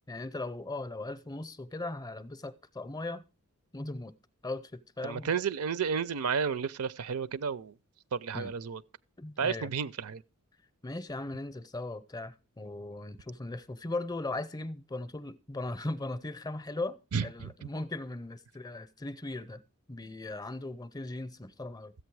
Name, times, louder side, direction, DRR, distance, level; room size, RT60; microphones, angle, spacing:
voice 1, 0.0-3.2 3.7-4.1 4.4-5.3 8.3-8.5 9.2-9.7 10.8-19.6 19.9-21.9, left 2 dB, 15° left, 0.6 m, -38 dB
voice 2, 5.0-7.7 8.1-8.8 9.4-10.2 17.1-17.7, right 6 dB, 80° right, 0.5 m, -32 dB
14.0 x 8.4 x 4.7 m
head